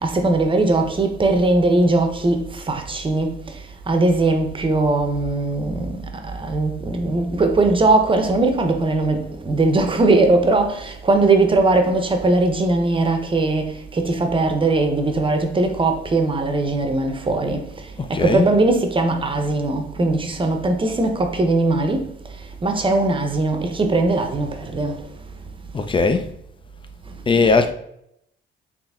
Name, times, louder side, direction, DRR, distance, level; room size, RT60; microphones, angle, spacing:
voice 1, 0.0-2.4 2.7-3.3 3.9-6.0 6.4-17.6 18.1-22.0 22.6-24.9 27.4-27.5, right 2 dB, 25° right, 0.8 m, -19 dB
voice 2, 18.0-18.5 25.7-26.3 27.3-27.7, left 4 dB, 25° left, 0.5 m, -18 dB
4.0 x 3.3 x 3.5 m
cardioid pair, 90°, 20 cm